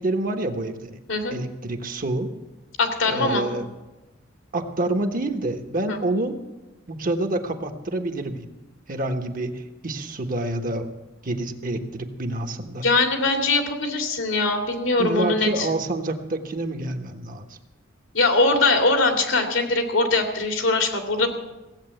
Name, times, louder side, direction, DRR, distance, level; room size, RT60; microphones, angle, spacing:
voice 1, 0.0-1.0 1.3-2.3 3.1-3.7 4.5-6.4 6.9-8.5 8.9-10.9 11.2-12.8 15.0-17.5, right 2 dB, 45° right, 6 dB, 1.2 m, -27 dB
voice 2, 2.8-3.4 5.9-6.0 12.8-15.7 18.1-21.3, left 3 dB, 90° left, 4 dB, 2.4 m, -21 dB
16.5 x 8.1 x 7.8 m, 1.1 s
head